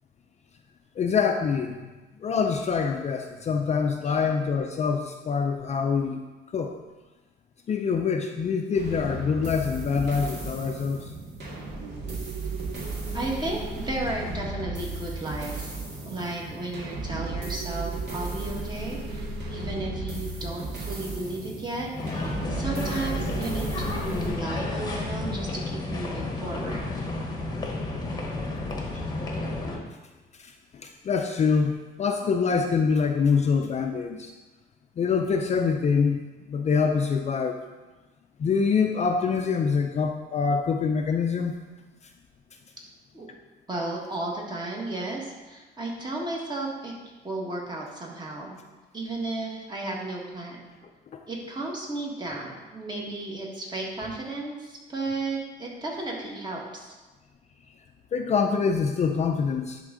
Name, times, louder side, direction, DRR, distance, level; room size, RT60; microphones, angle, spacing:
voice 1, 1.0-1.9 2.2-6.2 6.5-6.8 7.7-11.1 30.4-34.3 35.0-37.6 38.4-41.5 58.1-59.8, left 5 dB, 35° left, 4 dB, 0.5 m, -25 dB
sound 1, 8.7-24.3, right 2 dB, 60° right, 2.1 m, -34 dB
voice 2, 12.8-15.7 16.0-21.9 22.3-26.9 28.9-29.0 43.1-43.3 43.7-46.9 47.2-48.6 48.9-50.6 51.3-56.9, right 2 dB, 20° right, -2 dB, 1.6 m, -34 dB
sound 2, 22.0-29.8, left 2 dB, 20° left, 1.0 m, -31 dB
10.5 x 3.6 x 3.8 m, 1.2 s
cardioid pair, 120°, 19 cm